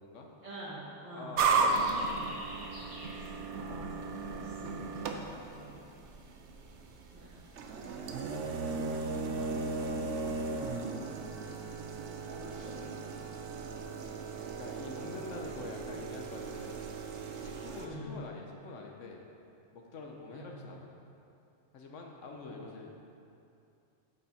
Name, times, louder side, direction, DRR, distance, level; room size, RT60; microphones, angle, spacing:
voice 1, 0.4-2.5 3.1-5.3 5.6-5.8 7.1-7.3 12.3-13.1 17.8-18.2 20.3-20.6 22.5-22.6, right 1 dB, 25° right, -10 dB, 2.2 m, -47 dB
voice 2, 1.1-2.1 8.7-9.2 14.6-16.8 17.4-19.2 19.7-20.9 21.7-22.9, left 3 dB, 85° left, 1 dB, 1.2 m, -46 dB
sound 1, 1.4-17.9, right 4 dB, 75° right, 1.0 m, -35 dB
sound 2, 1.6-11.0, right 1 dB, 55° right, 1.6 m, -54 dB
8.3 x 7.0 x 4.2 m, 2.7 s
omnidirectional pair, 1.2 m